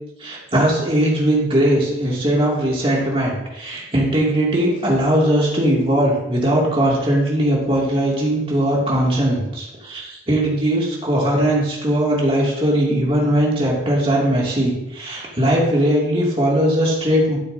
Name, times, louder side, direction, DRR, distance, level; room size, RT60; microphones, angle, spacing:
voice 1, 0.2-17.4, right 1 dB, 30° right, -4 dB, 2.6 m, -19 dB
12.0 x 9.3 x 2.8 m, 0.91 s
head